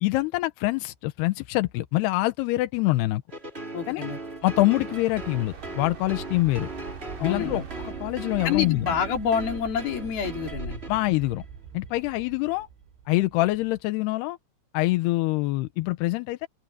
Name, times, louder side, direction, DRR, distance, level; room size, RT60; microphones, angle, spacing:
voice 1, 0.0-3.2 3.9-4.1 4.4-6.7 7.2-8.9 10.9-11.4 11.7-12.7 13.1-14.4 14.7-16.5, left 19 dB, 75° left, 2.6 m, -25 dB
sound 1, 3.3-11.4, right 3 dB, 20° right, 2.3 m, -39 dB
voice 2, 3.7-4.2 7.2-7.7 8.4-10.8, left 7 dB, 60° left, 4.9 m, -27 dB
sound 2, 3.9-13.8, right 7 dB, 85° right, 5.7 m, -43 dB
sound 3, 4.4-10.5, right 4 dB, 50° right, 6.8 m, -49 dB
open air
omnidirectional pair, 5.2 m